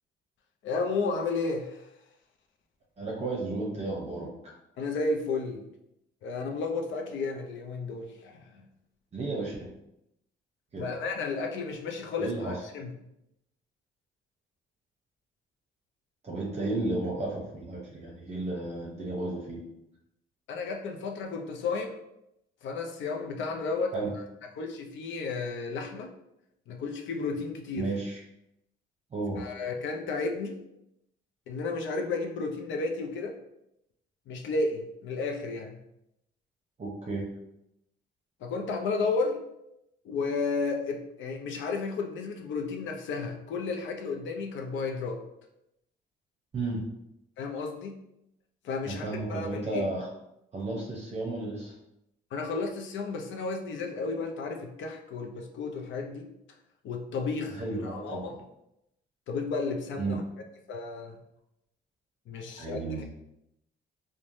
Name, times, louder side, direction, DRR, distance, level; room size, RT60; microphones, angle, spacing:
voice 1, 0.6-1.9 4.8-5.6 6.2-8.7 10.8-12.9 20.5-22.0 22.6-23.9 24.6-26.1 26.7-27.9 29.4-30.6 31.5-33.4 34.3-35.8 38.4-39.4 40.0-45.2 47.4-47.9 48.6-49.8 52.3-56.3 56.8-58.4 59.3-60.2 60.7-61.2 62.3-63.0, left 4 dB, 70° left, 3 dB, 0.5 m, -33 dB
voice 2, 3.0-4.3 9.1-9.6 10.7-11.0 12.2-12.6 16.2-19.6 23.9-24.1 27.8-28.2 29.1-29.4 36.8-37.2 46.5-46.8 48.8-50.1 50.5-51.7 57.6-58.4 60.0-60.2 62.6-63.0, right 2 dB, 35° right, -3 dB, 0.6 m, -33 dB
3.1 x 2.1 x 2.6 m, 0.83 s
cardioid pair, 90°, 20 cm